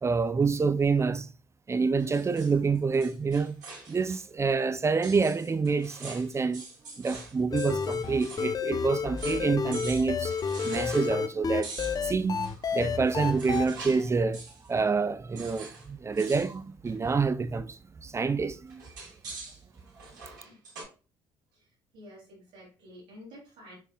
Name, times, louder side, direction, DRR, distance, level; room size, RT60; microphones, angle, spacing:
voice 1, 0.0-1.3 1.7-6.7 7.0-10.4 10.6-11.7 12.0-14.4 14.7-18.8, right 4 dB, 30° right, 0.7 m, -27 dB
sound 1, 2.0-4.2 4.5-4.6 5.0-8.6 8.8-8.9 9.2-9.5 9.7-11.2 11.6-14.1 14.3-14.7 15.4-15.9 16.1-16.5 16.9-17.2 18.7-20.8, right 3 dB, 90° right, 3.1 m, -45 dB
sound 2, 7.5-13.7, left 6 dB, 40° left, 0.8 m, -31 dB
voice 2, 21.5-23.8, equal, 75° right, 3.4 m, -50 dB
7.5 x 5.5 x 2.4 m
hypercardioid pair, 55°, 10 cm